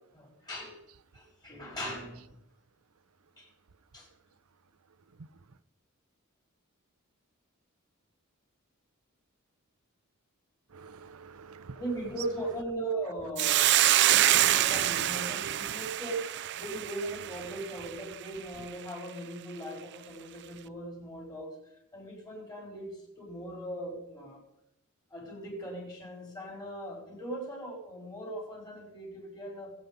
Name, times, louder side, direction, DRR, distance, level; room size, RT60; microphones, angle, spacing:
voice 1, 0.1-0.8 1.1-2.3 3.4-3.5 3.9-4.1 11.8-13.7 14.1-21.5 21.9-24.4 25.1-29.7, right 1 dB, 20° left, 5.2 m, -39 dB
voice 2, 10.7-12.5 14.3-15.3 15.6-15.9 16.2-16.4 16.7-17.6, right 6 dB, 90° right, 0.7 m, -49 dB
Hiss, 13.4-17.9, right 13 dB, 55° right, 0.5 m, -26 dB
20.5 x 8.7 x 5.3 m
head